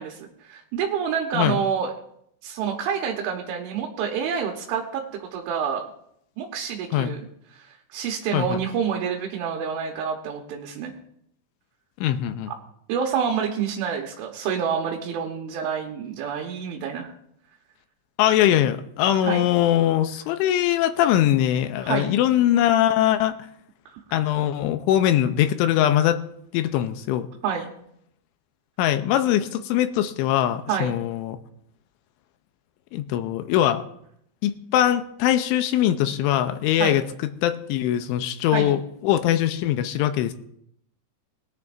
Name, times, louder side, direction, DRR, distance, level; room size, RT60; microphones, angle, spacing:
voice 1, 0.0-1.9 2.4-5.8 6.4-7.2 7.5-10.9 12.5-12.6 12.9-17.1 19.2-19.5 21.8-22.1 27.4-27.7 30.7-31.0 36.8-37.0 38.5-38.7, right 7 dB, 85° right, 0 dB, 3.6 m, -28 dB
voice 2, 12.0-12.5 18.2-23.3 24.1-26.2 26.5-27.3 28.8-31.4 32.9-33.8 34.4-37.0 37.4-40.3, left 12 dB, 85° left, 9 dB, 3.1 m, -22 dB
20.5 x 10.5 x 2.6 m, 0.72 s
omnidirectional pair, 5.4 m